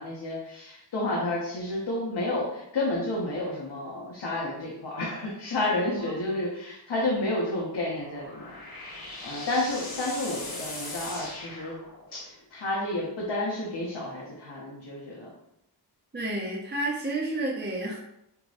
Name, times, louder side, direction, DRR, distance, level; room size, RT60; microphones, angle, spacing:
voice 1, 0.0-11.8 12.1-15.3, left 2 dB, 75° left, -5 dB, 1.5 m, -31 dB
sound 1, 7.9-12.3, left 2 dB, 60° left, 1.9 m, -40 dB
voice 2, 16.1-18.0, right 2 dB, 25° right, -4 dB, 1.1 m, -30 dB
8.7 x 3.4 x 3.2 m, 0.81 s
wide cardioid pair, 160°, 41 cm